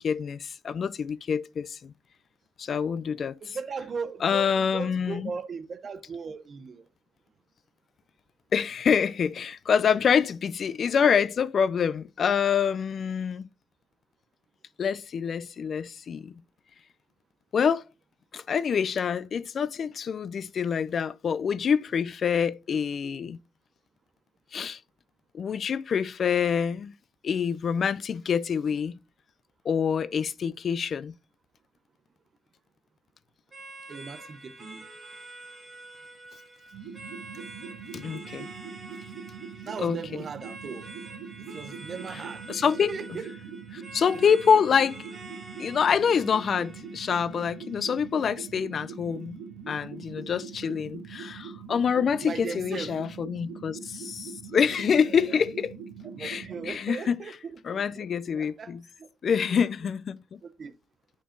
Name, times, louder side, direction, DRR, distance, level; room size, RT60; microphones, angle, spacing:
voice 1, 0.0-1.9 2.6-3.6 4.2-5.3 8.5-13.5 14.8-16.4 17.5-17.8 18.3-23.4 24.5-24.8 25.3-26.9 27.2-29.0 29.6-31.1 37.9-38.5 39.8-40.2 42.1-42.2 42.5-43.2 43.7-45.0 45.6-55.8 56.2-57.2 57.6-58.8 59.2-60.4, left 7 dB, 50° left, 0.3 m, -26 dB
voice 2, 3.4-6.8 33.9-34.8 39.6-40.9 41.4-42.4 42.9-43.6 52.2-53.0 55.3-55.4 56.1-58.1 58.3-59.1 59.5-59.6 60.6-60.7, right 5 dB, 50° right, 0.6 m, -38 dB
sound 1, 33.5-48.5, right 2 dB, 30° right, 1.9 m, -47 dB
sound 2, 36.7-56.7, right 6 dB, 85° right, 1.9 m, -43 dB
10.0 x 4.3 x 2.5 m
cardioid pair, 90°, 0 cm